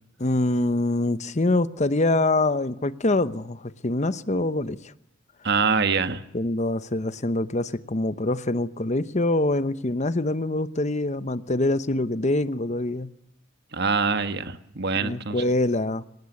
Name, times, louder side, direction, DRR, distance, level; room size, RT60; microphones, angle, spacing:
voice 1, 0.2-4.9 6.3-13.1 15.0-16.0, left 2 dB, 35° left, 14 dB, 0.9 m, -25 dB
voice 2, 5.4-6.2 13.7-15.4, right 5 dB, 55° right, 10 dB, 1.5 m, -24 dB
24.5 x 19.0 x 9.7 m, 0.81 s
head